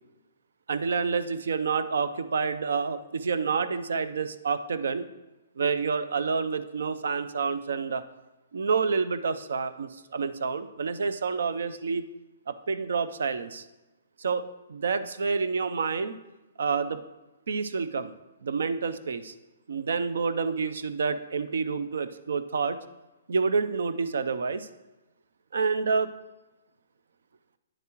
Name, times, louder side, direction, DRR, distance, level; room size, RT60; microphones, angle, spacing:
voice 1, 0.7-5.1 5.6-8.0 8.5-12.0 12.5-13.7 14.2-16.2 16.6-17.0 17.5-18.1 18.4-19.3 19.7-22.8 23.3-24.7 25.5-26.1, right 5 dB, 80° right, 13 dB, 0.5 m, -28 dB
9.3 x 7.3 x 3.0 m, 1.1 s
hypercardioid pair, 160°, 0 cm